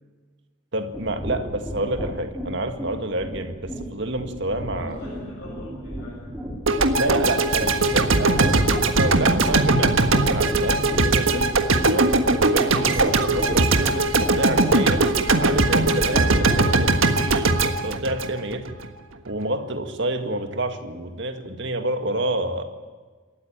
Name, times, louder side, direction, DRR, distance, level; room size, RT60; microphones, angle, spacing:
voice 1, 0.7-5.0 7.0-11.5 11.7-15.0 15.4-18.7 19.3-22.6, right 1 dB, 55° right, 6 dB, 1.9 m, -28 dB
sound 1, 0.9-16.8, equal, ahead, 3.4 m, -33 dB
voice 2, 4.7-6.4 6.9-8.1, equal, 50° left, -6 dB, 7.2 m, -40 dB
sound 2, 6.7-18.9, right 3 dB, 70° right, 1.5 m, -20 dB
27.5 x 13.5 x 9.1 m, 1.4 s
head